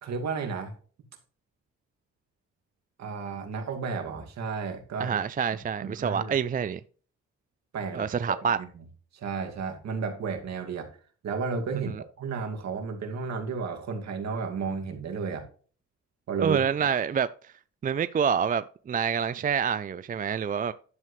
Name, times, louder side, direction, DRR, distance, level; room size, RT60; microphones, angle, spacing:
voice 1, 0.0-0.7 3.0-5.2 5.5-5.6 5.8-6.4 7.7-8.1 8.6-8.7 9.1-10.9 11.2-15.4 16.3-16.9, right 5 dB, 60° right, 2.3 m, -33 dB
voice 2, 5.0-6.8 7.9-8.6 16.4-17.5 17.8-20.7, right 7 dB, 30° right, 0.4 m, -27 dB
11.0 x 7.4 x 3.2 m
cardioid pair, 90°, 30 cm